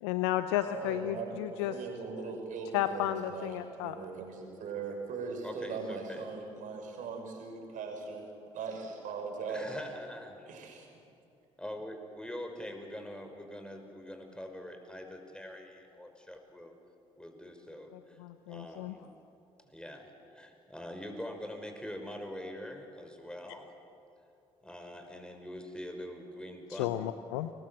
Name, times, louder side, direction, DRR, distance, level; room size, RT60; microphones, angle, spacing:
voice 1, 0.0-1.8 2.1-2.3 2.7-4.0 17.9-18.9 26.7-27.5, left 13 dB, 80° left, 11 dB, 0.7 m, -33 dB
voice 2, 0.6-8.3 8.5-9.7 10.5-10.9, right 5 dB, 65° right, 3 dB, 5.8 m, -40 dB
voice 3, 5.4-6.3 9.5-10.4 11.6-16.7 17.2-18.2 18.5-19.1 19.7-23.8 24.6-27.1, left 1 dB, 5° left, 4 dB, 5.8 m, -44 dB
30.0 x 20.5 x 7.8 m, 2.7 s
hypercardioid pair, 50°, 14 cm